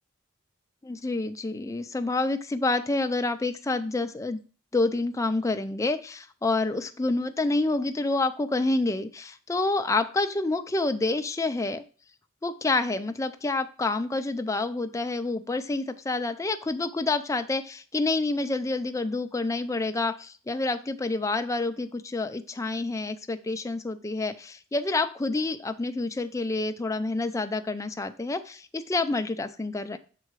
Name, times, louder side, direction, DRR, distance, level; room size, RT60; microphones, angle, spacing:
voice 1, 0.8-4.4 4.7-11.8 12.4-30.0, left 2 dB, 15° left, 8 dB, 0.4 m, -28 dB
6.6 x 3.8 x 4.6 m, 0.39 s
head